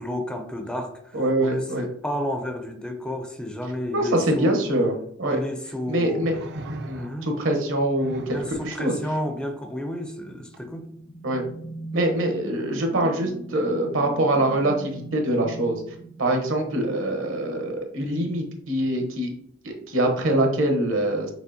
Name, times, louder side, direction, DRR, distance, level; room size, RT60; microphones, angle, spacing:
voice 1, 0.0-4.6 5.3-6.3 6.9-7.3 8.3-10.9, left 1 dB, 5° left, 0.4 m, -31 dB
voice 2, 1.1-1.8 3.9-4.9 5.2-5.4 5.9-6.3 6.9-7.1 7.4-8.9 11.2-11.4 11.9-15.8 16.2-19.3 19.6-21.3, right 1 dB, 75° right, 1.1 m, -24 dB
sound 1, 4.9-5.0 6.2-7.4 7.9-8.6 10.5-10.7, right 1 dB, 55° right, 0.5 m, -37 dB
sound 2, 10.5-16.9, right 2 dB, 60° left, 1.0 m, -39 dB
6.2 x 2.9 x 2.8 m
head